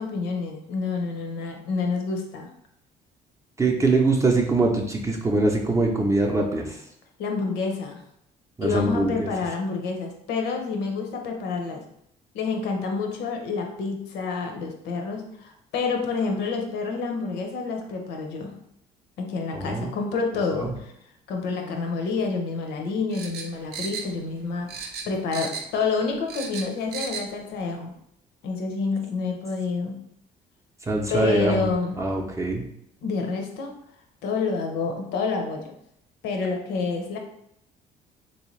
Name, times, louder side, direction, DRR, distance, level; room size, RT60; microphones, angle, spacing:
voice 1, 0.0-2.5 7.2-8.0 8.6-11.8 12.3-18.5 19.2-20.9 21.3-27.9 28.4-30.0 31.1-32.0 33.0-33.7 34.2-35.7 36.2-37.2, left 4 dB, 80° left, 3 dB, 0.7 m, -28 dB
voice 2, 3.6-6.7 8.6-9.3 19.5-19.9 20.5-20.7 30.9-31.7 32.0-32.6, right 2 dB, 15° right, 0 dB, 0.5 m, -23 dB
sound 1, 23.1-24.4 24.7-25.8 26.1-27.3 27.6-27.7, right 5 dB, 70° right, 0.6 m, -35 dB
3.2 x 2.7 x 3.1 m, 0.75 s
cardioid pair, 110°, 17 cm